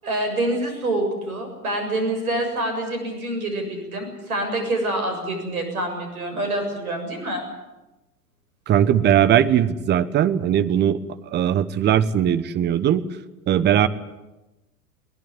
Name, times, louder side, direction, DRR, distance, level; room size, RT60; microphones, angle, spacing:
voice 1, 0.0-7.4, right 1 dB, 65° right, 5 dB, 7.4 m, -26 dB
voice 2, 8.7-11.0 11.3-13.0 13.5-13.9, right 10 dB, 25° right, 14 dB, 1.1 m, -19 dB
22.5 x 18.5 x 9.8 m, 1.0 s
figure-of-eight pair, 95°, 46 cm